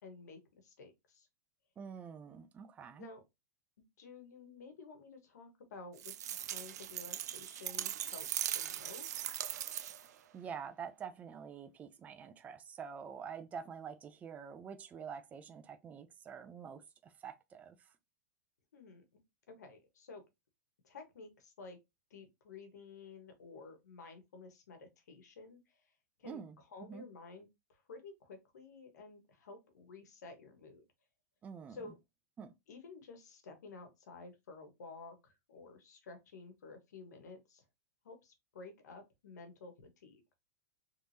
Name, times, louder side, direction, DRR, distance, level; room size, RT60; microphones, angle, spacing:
voice 1, 0.0-1.3 3.0-3.2 4.0-9.3 18.7-20.2 20.8-21.8 22.1-25.9 26.2-30.8 31.7-32.0 32.7-37.6 38.0-40.2, left 4 dB, 90° left, 1.3 m, -52 dB
voice 2, 1.8-3.1 10.1-17.8 26.2-26.6 26.9-27.1 31.4-31.8 32.4-32.5, right 7 dB, 15° right, 0.4 m, -47 dB
sound 1, 6.0-10.2, right 11 dB, 80° right, 0.4 m, -39 dB
3.5 x 3.1 x 2.7 m
supercardioid pair, 145°, 9 cm